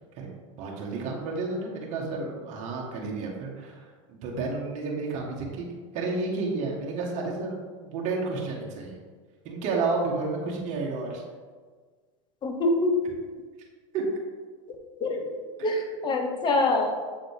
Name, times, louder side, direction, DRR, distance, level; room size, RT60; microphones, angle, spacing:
voice 1, 0.6-5.6 5.9-9.0 9.4-11.2 13.9-14.0 15.7-15.8, right 3 dB, 45° right, -2 dB, 1.4 m, -31 dB
voice 2, 12.4-13.1 15.0-15.3 15.6-16.9, left 2 dB, 30° left, 3 dB, 1.0 m, -25 dB
7.6 x 3.9 x 3.4 m, 1.5 s
supercardioid pair, 115°, 17 cm